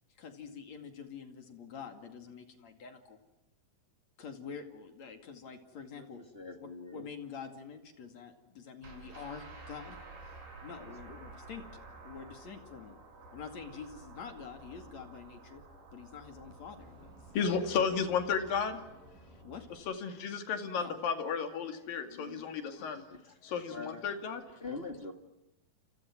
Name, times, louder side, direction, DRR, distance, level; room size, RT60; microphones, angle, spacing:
voice 1, 0.2-3.2 4.2-6.2 6.9-13.0 13.3-15.6 15.9-17.1 17.4-17.5 19.4-19.7 20.8-21.0, left 6 dB, 50° left, 7 dB, 3.4 m, -47 dB
voice 2, 6.0-7.1 11.0-11.2 22.0-22.4 23.0-23.2 23.7-24.0 24.6-25.1, left 3 dB, 25° left, 5 dB, 1.2 m, -44 dB
sound 1, 8.8-19.8, right 3 dB, 60° right, 7.4 m, -52 dB
voice 3, 17.3-18.8 19.1-19.2 19.9-23.1 23.4-24.4, left 6 dB, 70° left, 7 dB, 4.0 m, -33 dB
29.5 x 28.0 x 6.1 m, 0.92 s
omnidirectional pair, 4.2 m